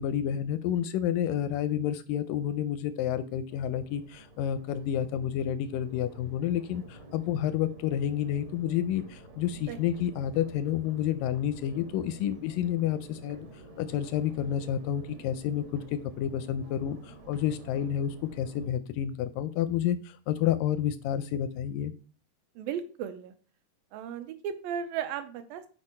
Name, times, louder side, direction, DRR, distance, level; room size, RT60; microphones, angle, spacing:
voice 1, 0.0-13.5 13.8-21.9, left 10 dB, 85° left, 12 dB, 2.0 m, -30 dB
Crowd, 3.5-18.6, right 1 dB, 65° right, 1.3 m, -50 dB
voice 2, 22.6-23.3 23.9-25.7, right 8 dB, 80° right, 9 dB, 2.4 m, -35 dB
8.2 x 4.7 x 4.3 m, 0.39 s
omnidirectional pair, 4.2 m